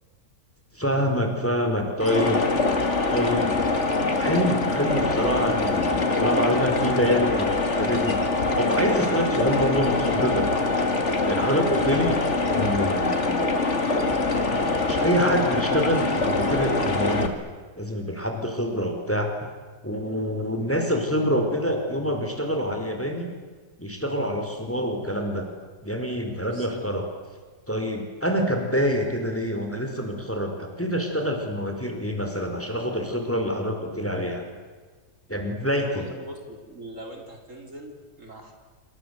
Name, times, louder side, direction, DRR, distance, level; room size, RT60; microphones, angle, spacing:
voice 1, 0.7-2.4 3.1-3.5 4.2-8.2 8.5-10.7 11.2-12.2 12.4-13.6 13.9-14.2 14.9-17.3 17.8-19.3 19.8-23.3 23.8-25.4 25.8-27.1 27.7-34.4 35.3-36.1, equal, 5° left, 4 dB, 4.3 m, -26 dB
sound 1, 2.0-17.3, left 3 dB, 40° left, 2.7 m, -24 dB
voice 2, 26.5-26.8 35.9-38.5, right 1 dB, 45° right, 3 dB, 4.4 m, -41 dB
28.0 x 26.0 x 8.1 m, 1.4 s
omnidirectional pair, 1.8 m